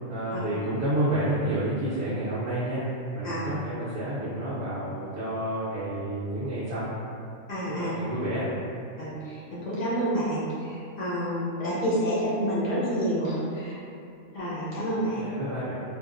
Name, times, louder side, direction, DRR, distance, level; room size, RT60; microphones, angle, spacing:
voice 1, 0.1-2.8 3.1-6.9 7.7-8.5 15.2-15.8, right 1 dB, 65° right, -10 dB, 0.8 m, -29 dB
voice 2, 7.5-7.9 9.0-13.8 14.3-15.2, equal, 50° left, -10 dB, 0.5 m, -29 dB
2.9 x 2.3 x 2.4 m, 2.6 s
omnidirectional pair, 1.4 m